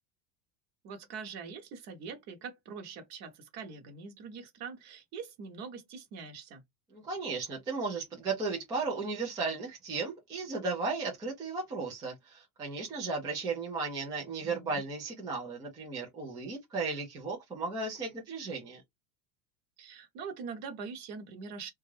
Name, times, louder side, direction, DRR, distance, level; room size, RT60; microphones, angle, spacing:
voice 1, 0.8-6.6 14.4-14.8 19.8-21.7, right 5 dB, 40° right, 0.9 m, -43 dB
voice 2, 6.9-18.8, right 4 dB, 10° right, 0.3 m, -35 dB
3.5 x 2.3 x 3.0 m
cardioid pair, 170°, 42 cm